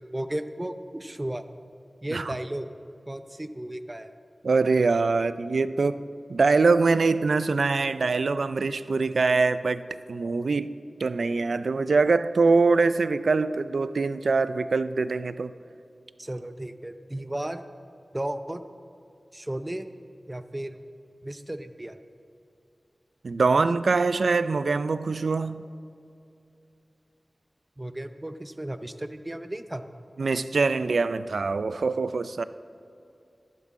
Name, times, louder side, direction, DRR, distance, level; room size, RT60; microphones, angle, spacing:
voice 1, 0.0-1.4 2.0-2.7 3.1-4.1 16.2-17.6 18.1-18.6 19.3-19.9 20.3-20.8 21.2-22.0 27.8-29.9, right 1 dB, 20° right, 10 dB, 0.6 m, -34 dB
voice 2, 4.4-6.0 6.3-9.8 10.1-10.7 11.0-15.5 23.2-25.7 30.2-32.4, right 4 dB, 85° right, 14 dB, 0.3 m, -23 dB
13.0 x 11.5 x 3.7 m, 2.6 s
wide cardioid pair, 60°, 0 cm